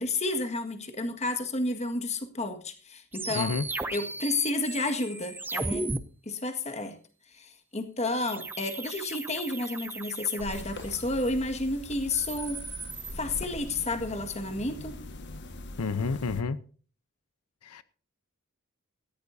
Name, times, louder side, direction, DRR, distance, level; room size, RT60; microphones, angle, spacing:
voice 1, 0.0-3.5 3.9-5.9 6.2-7.0 7.3-12.7 13.2-15.0, left 2 dB, 30° left, 1.7 m, -31 dB
sound 1, 3.1-6.0 8.3-11.1 11.9-13.1, right 2 dB, 10° right, 0.7 m, -36 dB
voice 2, 3.3-3.7 15.8-16.6 17.6-17.8, left 4 dB, 90° left, 0.7 m, -30 dB
sound 2, 10.4-16.4, left 1 dB, 50° left, 1.6 m, -42 dB
18.0 x 15.5 x 2.7 m
head